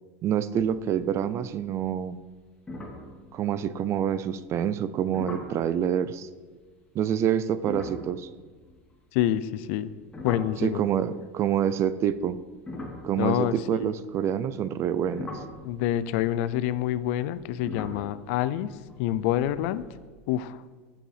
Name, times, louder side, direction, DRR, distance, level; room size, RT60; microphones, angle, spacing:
voice 1, 0.2-2.2 3.3-6.3 6.9-8.3 10.6-12.4 13.0-15.3, right 9 dB, 40° right, 15 dB, 0.4 m, -27 dB
sound 1, 0.5-1.2 1.5-1.9 2.2-2.3 2.7-4.0 5.1-5.6 7.5-11.1 11.9-14.1 14.7-20.1, left 2 dB, 15° left, 2.1 m, -42 dB
voice 2, 9.1-9.9 10.2-10.8 13.2-13.9 15.6-18.7 19.0-19.9 20.3-20.6, left 12 dB, 65° left, 15 dB, 0.4 m, -27 dB
7.6 x 7.2 x 4.9 m, 1.4 s
supercardioid pair, 115°, 7 cm